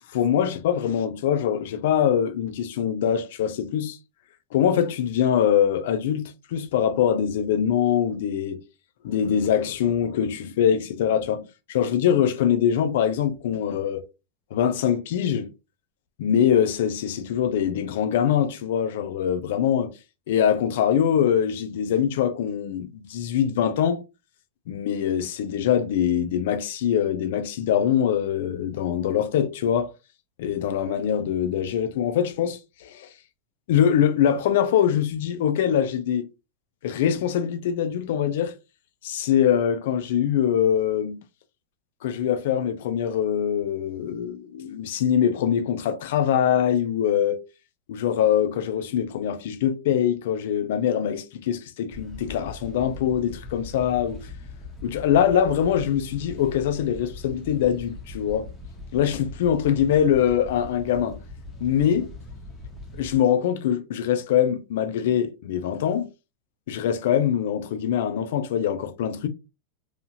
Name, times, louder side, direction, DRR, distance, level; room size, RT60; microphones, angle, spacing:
voice 1, 0.1-4.0 4.5-8.6 9.0-14.0 14.5-15.5 16.2-19.9 20.3-24.0 24.7-29.9 30.4-33.1 33.7-36.3 36.8-38.5 39.0-41.2 42.0-47.4 47.9-54.3 54.8-58.5 58.9-61.2 61.6-62.1 63.0-66.1 66.7-69.3, left 9 dB, 65° left, 0.4 m, -23 dB
sound 1, 51.9-63.2, left 3 dB, 10° left, 0.6 m, -40 dB
2.8 x 2.4 x 2.6 m
supercardioid pair, 170°, 0 cm